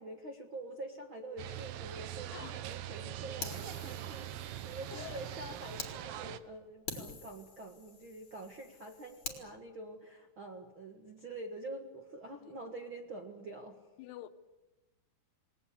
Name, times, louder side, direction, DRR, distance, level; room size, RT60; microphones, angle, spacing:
voice 1, 0.0-13.8, right 2 dB, 50° right, 1.5 m, -46 dB
sound 1, 1.4-6.4, right 12 dB, 70° right, 2.5 m, -42 dB
Fire, 3.4-5.9 6.4-6.5 6.9-9.4, left 4 dB, 35° left, 3.6 m, -46 dB
voice 2, 4.9-5.2 12.4-12.6 14.0-14.3, left 13 dB, 80° left, 3.1 m, -47 dB
28.5 x 19.5 x 8.3 m
omnidirectional pair, 4.8 m